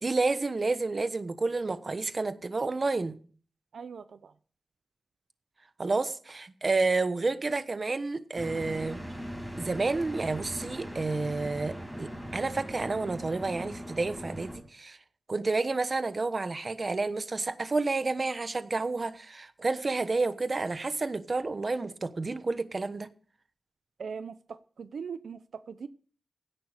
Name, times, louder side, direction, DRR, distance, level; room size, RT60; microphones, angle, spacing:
voice 1, 0.0-3.2 5.8-9.0 9.6-15.0 15.3-23.1, right 3 dB, 40° right, 1.1 m, -30 dB
voice 2, 3.7-4.3 9.5-9.6 24.0-25.9, right 6 dB, 80° right, 0.8 m, -41 dB
sound 1, 8.4-14.6, equal, ahead, 6.0 m, -40 dB
16.5 x 11.0 x 5.1 m
wide cardioid pair, 105°, 0 cm